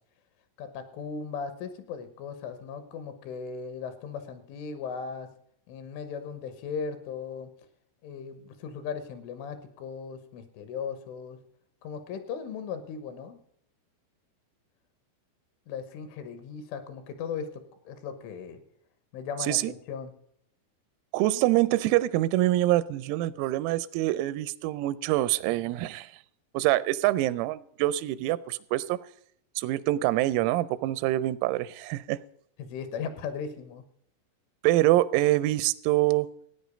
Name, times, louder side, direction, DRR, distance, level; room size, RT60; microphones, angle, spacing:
voice 1, 0.6-5.3 5.7-7.5 8.0-11.4 11.8-13.4 15.7-18.6 19.1-20.1 21.3-21.4 32.6-33.8, left 6 dB, 75° left, 11 dB, 3.5 m, -37 dB
voice 2, 19.4-19.7 21.1-26.2 26.5-29.0 29.6-32.2 34.6-36.3, right 16 dB, 90° right, 17 dB, 3.4 m, -25 dB
15.5 x 9.4 x 5.1 m, 0.69 s
omnidirectional pair, 6.0 m